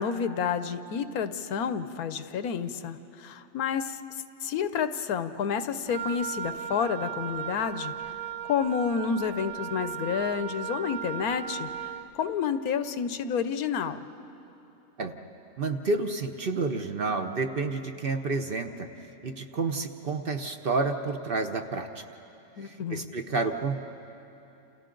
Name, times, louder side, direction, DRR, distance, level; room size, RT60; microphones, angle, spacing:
voice 1, 0.0-4.0 4.4-7.9 8.5-11.7 12.1-14.0 22.6-23.0, left 7 dB, 90° left, 11 dB, 1.2 m, -29 dB
Wind instrument woodwind instrument, 5.9-12.1, right 9 dB, 80° right, 0.3 m, -36 dB
voice 2, 15.6-18.9 19.2-22.0 22.6-23.8, right 3 dB, 45° right, 6 dB, 0.9 m, -30 dB
28.5 x 28.5 x 3.9 m, 2.8 s
omnidirectional pair, 1.5 m